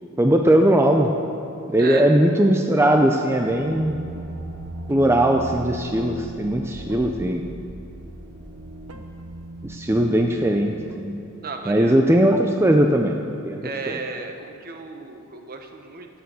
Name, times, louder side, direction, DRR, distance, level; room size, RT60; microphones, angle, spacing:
voice 1, 0.2-1.1 1.7-4.0 4.9-7.5 9.6-11.2 11.7-13.2 13.4-13.6 13.9-14.0, right 1 dB, 10° right, 3 dB, 0.5 m, -19 dB
voice 2, 1.8-2.2 11.4-12.0 13.6-16.1, right 4 dB, 45° right, 4 dB, 1.1 m, -34 dB
sound 1, 3.3-11.9, right 1 dB, 80° right, 1.1 m, -38 dB
13.0 x 9.5 x 7.6 m, 2.9 s
head